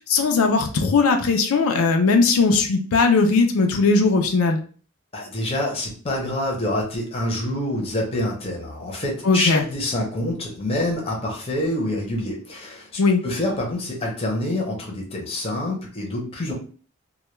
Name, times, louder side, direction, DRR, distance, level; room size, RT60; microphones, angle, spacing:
voice 1, 0.0-4.6 9.2-9.6 13.0-13.2, left 4 dB, 85° left, 4 dB, 0.4 m, -19 dB
voice 2, 5.1-16.5, left 1 dB, 25° left, -1 dB, 0.6 m, -26 dB
2.2 x 2.1 x 3.0 m, 0.41 s
head